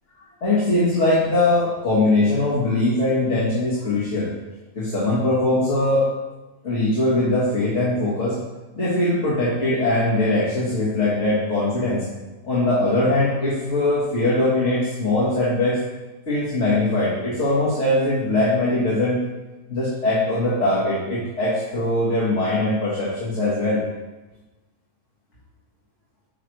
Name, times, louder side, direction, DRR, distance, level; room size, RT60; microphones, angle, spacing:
voice 1, 0.4-4.3 4.7-6.1 6.6-8.4 8.8-12.0 12.4-15.8 16.3-19.2 19.7-23.8, left 2 dB, 50° left, -8 dB, 1.9 m, -21 dB
8.6 x 3.3 x 4.6 m, 1.1 s
omnidirectional pair, 1.6 m